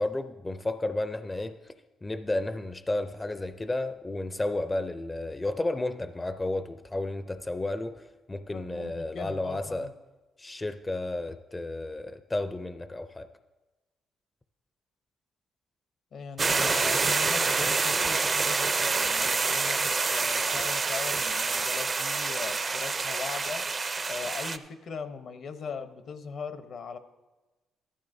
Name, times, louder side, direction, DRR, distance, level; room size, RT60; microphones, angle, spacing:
voice 1, 0.0-1.7 2.0-9.9 10.4-13.3, left 2 dB, 20° left, 10 dB, 0.5 m, -32 dB
voice 2, 8.5-9.9 16.1-23.6 24.1-27.0, left 5 dB, 60° left, 9 dB, 0.8 m, -40 dB
sound 1, 16.4-24.6, right 4 dB, 35° right, 0.5 m, -27 dB
14.0 x 12.5 x 2.7 m, 1.2 s
cardioid pair, 90°, 0 cm